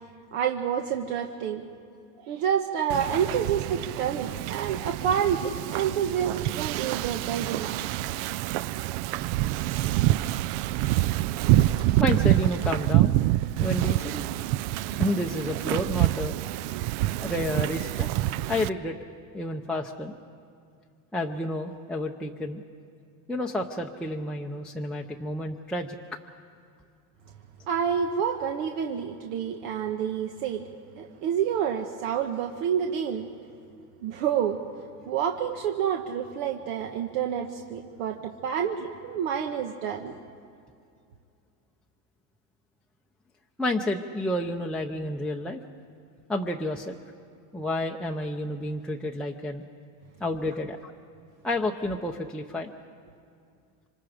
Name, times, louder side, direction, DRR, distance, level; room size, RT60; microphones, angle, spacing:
voice 1, 0.3-1.7 2.2-7.8 27.7-30.7 31.0-33.3 34.0-34.6 35.1-40.2, right 8 dB, 80° right, 3 dB, 1.3 m, -28 dB
Wind / Ocean, 2.9-18.7, right 15 dB, 65° right, 0.5 m, -26 dB
voice 2, 12.0-13.2 13.6-14.3 14.9-16.4 17.2-18.1 18.5-19.0 19.3-20.2 21.1-22.6 23.3-26.0 43.6-45.6 46.3-47.0 47.5-49.6 50.2-50.9 51.4-52.7, left 1 dB, ahead, 0 dB, 0.5 m, -30 dB
26.5 x 25.5 x 5.0 m, 2.4 s
cardioid pair, 140°, 43 cm